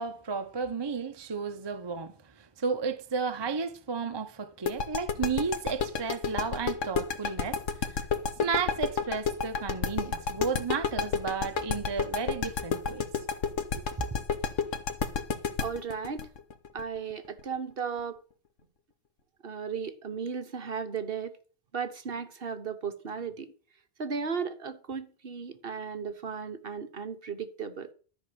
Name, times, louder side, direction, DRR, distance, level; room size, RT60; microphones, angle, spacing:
voice 1, 0.0-8.1 8.4-13.1 13.8-13.9, right 5 dB, 25° right, 0.7 m, -33 dB
sound 1, 4.7-17.4, left 6 dB, 90° left, 1.5 m, -30 dB
voice 2, 15.6-16.3 16.7-18.2 19.4-21.3 21.7-23.5 24.0-27.9, right 6 dB, 50° right, 1.2 m, -35 dB
13.0 x 5.5 x 7.9 m
omnidirectional pair, 1.3 m